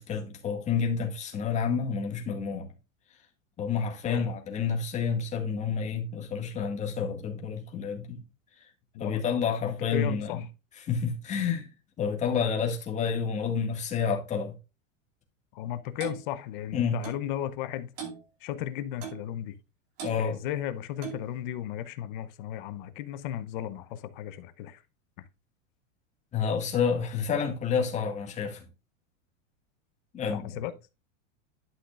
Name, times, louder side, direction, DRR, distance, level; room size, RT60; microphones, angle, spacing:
voice 1, 0.0-2.7 3.6-8.2 9.0-10.4 10.8-11.7 12.0-14.5 16.7-17.0 20.0-20.4 26.3-28.6 30.1-30.6, left 6 dB, 20° left, 1.9 m, -29 dB
voice 2, 9.6-10.4 15.5-17.9 18.4-19.6 20.2-24.8 30.3-30.7, left 11 dB, 40° left, 0.7 m, -35 dB
Clock, 16.0-16.2 17.0-17.2 18.0-18.2 19.0-19.3 20.0-20.2 21.0-21.3, right 7 dB, 35° right, 2.6 m, -38 dB
11.5 x 6.0 x 2.5 m
supercardioid pair, 165°, 39 cm